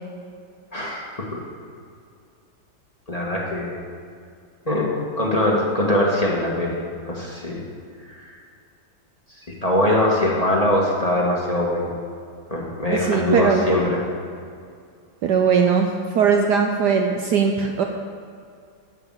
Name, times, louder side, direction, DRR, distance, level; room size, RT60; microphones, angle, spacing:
voice 1, 0.7-1.0 1.3-1.4 3.1-3.8 4.6-6.8 7.1-7.6 8.0-8.3 9.6-11.9 12.5-14.0, left 1 dB, 20° left, -4 dB, 1.3 m, -22 dB
voice 2, 12.9-13.6 15.2-17.8, right 6 dB, 70° right, 3 dB, 1.1 m, -20 dB
11.5 x 5.5 x 7.6 m, 2.3 s
omnidirectional pair, 2.2 m